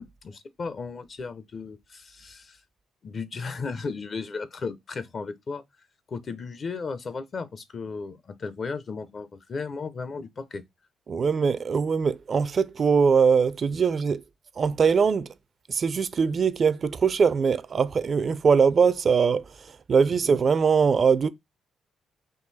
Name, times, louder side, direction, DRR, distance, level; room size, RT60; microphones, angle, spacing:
voice 1, 0.0-2.6 3.0-5.6 6.1-10.6 20.1-20.2, left 4 dB, 45° left, 0.6 m, -35 dB
voice 2, 11.1-14.2 14.6-15.3 15.7-19.4 19.9-21.3, right 6 dB, 45° right, 0.4 m, -22 dB
3.8 x 2.7 x 4.0 m
cardioid pair, 90°, 0 cm